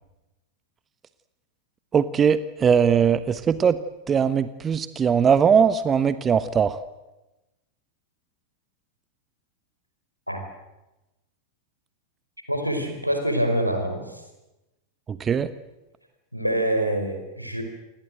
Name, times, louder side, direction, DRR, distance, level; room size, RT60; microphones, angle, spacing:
voice 1, 1.9-3.8 4.1-6.8 15.1-15.5, right 7 dB, 20° right, 14 dB, 1.1 m, -20 dB
voice 2, 12.5-14.2 16.3-17.6, right 1 dB, 90° right, 5 dB, 5.2 m, -25 dB
29.0 x 22.0 x 7.9 m, 1.0 s
figure-of-eight pair, 90°, 0 cm